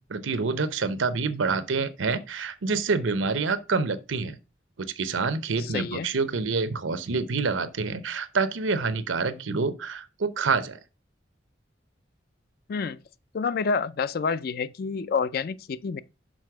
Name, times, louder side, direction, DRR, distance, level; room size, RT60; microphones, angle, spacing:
voice 1, 0.1-4.4 4.8-10.8, right 4 dB, 85° right, 0.7 m, -27 dB
voice 2, 5.6-6.1 12.7-13.0 13.3-16.0, left 5 dB, 50° left, 0.4 m, -28 dB
6.3 x 4.2 x 4.6 m
head